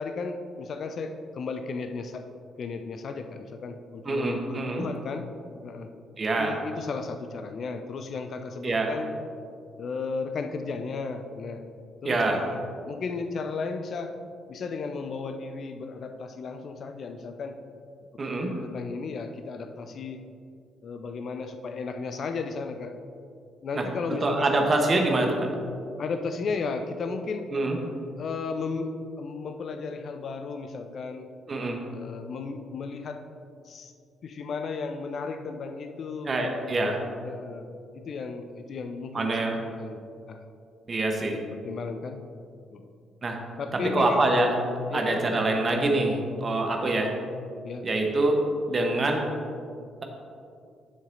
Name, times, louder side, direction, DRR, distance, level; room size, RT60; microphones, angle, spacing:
voice 1, 0.0-2.3 2.6-5.3 5.6-5.9 6.3-9.1 9.8-11.6 12.0-14.2 14.5-17.6 18.4-20.2 20.8-22.9 23.6-24.5 26.0-27.5 28.2-31.3 31.9-33.3 33.6-33.9 34.2-36.7 37.2-37.7 37.9-40.0 40.3-40.4 41.2-42.2 42.7-42.9 43.6-44.3 44.9-45.2 47.6-47.9, left 4 dB, 45° left, 7 dB, 0.4 m, -34 dB
voice 2, 4.0-4.8 6.2-6.6 8.6-8.9 12.0-12.4 18.2-18.6 23.7-23.9 24.2-25.5 27.5-27.8 31.5-31.8 36.3-37.0 39.1-39.6 40.9-41.4 43.2-43.4 43.9-44.5 44.9-47.1 47.8-49.2, right 2 dB, 35° right, 2 dB, 1.1 m, -25 dB
9.9 x 7.3 x 2.7 m, 2.4 s
figure-of-eight pair, 40°, 0 cm